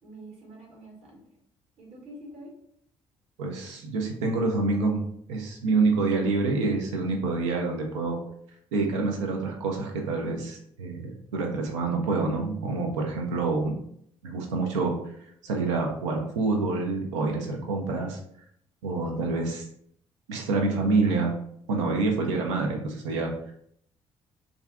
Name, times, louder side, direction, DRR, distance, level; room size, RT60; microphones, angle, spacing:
voice 1, 0.0-1.2 1.8-2.5, right 1 dB, 45° right, -2 dB, 1.1 m, -46 dB
voice 2, 3.4-5.0 5.3-8.2 8.7-13.7 14.2-15.1 15.4-18.2 18.8-19.6 20.3-21.4 21.7-23.3, right 3 dB, 75° right, 1 dB, 0.4 m, -27 dB
2.4 x 2.3 x 2.2 m, 0.68 s
figure-of-eight pair, 45°, 16 cm